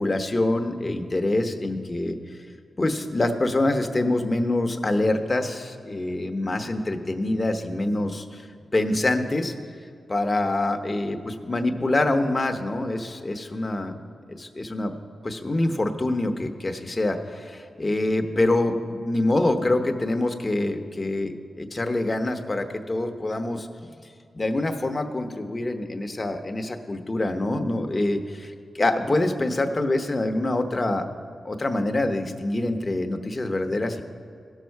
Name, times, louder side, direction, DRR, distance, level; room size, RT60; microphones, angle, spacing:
voice 1, 0.0-2.4 2.8-8.5 8.7-9.5 10.1-14.0 14.3-14.9 15.2-23.7 24.3-31.1 31.4-34.0, left 2 dB, 25° left, 6 dB, 0.9 m, -25 dB
17.0 x 6.4 x 4.6 m, 2.3 s
cardioid pair, 90°, 0 cm